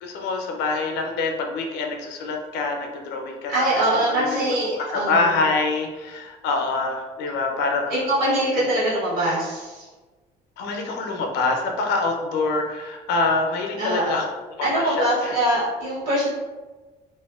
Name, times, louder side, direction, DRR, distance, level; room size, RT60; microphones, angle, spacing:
voice 1, 0.0-3.7 4.2-4.5 4.9-7.9 8.6-8.7 10.6-14.2 14.6-15.1, left 3 dB, 85° left, 2 dB, 0.5 m, -25 dB
voice 2, 3.5-5.3 7.9-9.9 13.8-14.2 14.6-16.3, right 1 dB, 65° right, -12 dB, 1.3 m, -23 dB
2.7 x 2.1 x 2.3 m, 1.3 s
cardioid pair, 110°, 17 cm